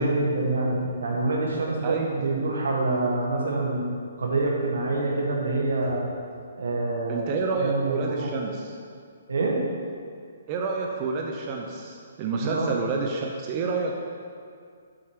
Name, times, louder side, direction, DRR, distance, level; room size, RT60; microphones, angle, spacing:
voice 1, 0.0-3.9 4.2-6.1 6.5-8.3 9.3-9.6 12.4-12.7, right 2 dB, 85° right, -1 dB, 1.5 m, -26 dB
voice 2, 7.1-8.7 10.5-13.9, right 4 dB, 25° right, 0 dB, 0.5 m, -29 dB
7.4 x 4.5 x 4.7 m, 2.2 s
hypercardioid pair, 165°, 0 cm